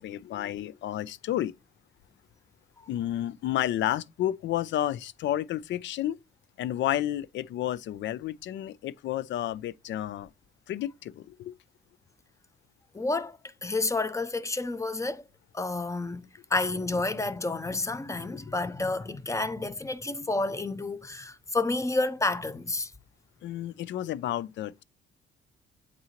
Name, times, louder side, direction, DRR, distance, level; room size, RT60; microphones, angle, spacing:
voice 1, 0.0-1.5 2.9-6.2 6.6-10.3 10.7-11.5 18.3-18.4 23.4-24.8, left 12 dB, 70° left, 0.4 m, -31 dB
voice 2, 12.9-15.2 15.5-22.9, left 2 dB, 15° left, 0.6 m, -30 dB
8.5 x 3.8 x 2.9 m
cardioid pair, 90°, 20 cm